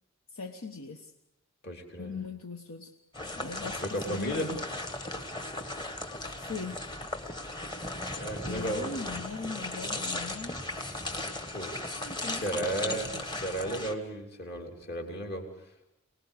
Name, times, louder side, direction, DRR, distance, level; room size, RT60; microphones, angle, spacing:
voice 1, 0.3-1.1 2.0-2.9 3.4-4.6 6.3-6.9 8.4-10.6 12.0-13.2, left 4 dB, 75° left, 5 dB, 1.2 m, -40 dB
voice 2, 1.6-2.1 3.8-4.5 8.1-9.0 11.5-11.7 12.3-15.5, right 1 dB, 45° left, 2 dB, 3.2 m, -34 dB
sound 1, 3.1-13.9, left 2 dB, 20° left, 1.5 m, -37 dB
24.5 x 19.5 x 8.3 m, 0.86 s
head